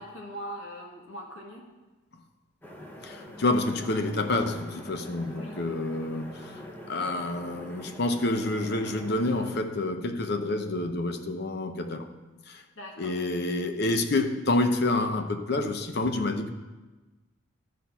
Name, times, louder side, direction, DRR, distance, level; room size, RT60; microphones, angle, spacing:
voice 1, 0.0-1.7 5.3-5.6 12.7-13.2, equal, 75° left, 0 dB, 1.8 m, -41 dB
sound 1, 2.6-9.6, left 1 dB, 10° left, 0.8 m, -44 dB
voice 2, 3.0-6.6 6.9-12.1 12.5-12.6 13.0-16.5, left 2 dB, 55° left, 7 dB, 0.7 m, -28 dB
12.5 x 4.3 x 5.8 m, 1.2 s
head